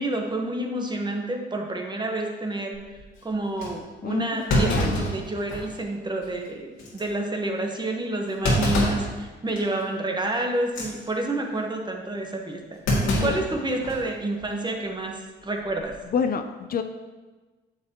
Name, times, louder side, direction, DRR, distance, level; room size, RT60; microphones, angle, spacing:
voice 1, 0.0-2.8 3.2-16.0, right 2 dB, 20° right, 2 dB, 1.2 m, -29 dB
Thump thud, 2.7-3.0 3.6-3.7 4.5-5.8 6.2-6.3 6.8-7.0 8.4-9.1 9.6-9.8 10.6-10.9 12.9-14.1 14.4-14.5 15.6-16.0, equal, 85° left, 2.1 m, -25 dB
voice 2, 4.0-5.0 13.1-13.4 16.1-16.8, left 6 dB, 50° left, 7 dB, 0.5 m, -28 dB
9.3 x 6.7 x 3.0 m, 1.3 s
cardioid pair, 90°, 20 cm